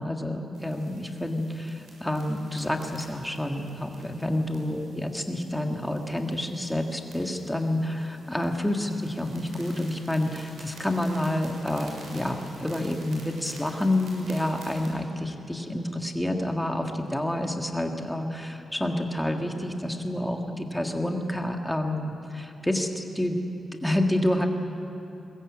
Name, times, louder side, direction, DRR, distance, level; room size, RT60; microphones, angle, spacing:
voice 1, 0.0-23.4 23.8-24.5, left 1 dB, 5° left, 3 dB, 1.7 m, -28 dB
sound 1, 0.5-14.9, right 2 dB, 85° right, 6.8 m, -50 dB
23.0 x 20.0 x 8.5 m, 2.9 s
wide cardioid pair, 165°, 0 cm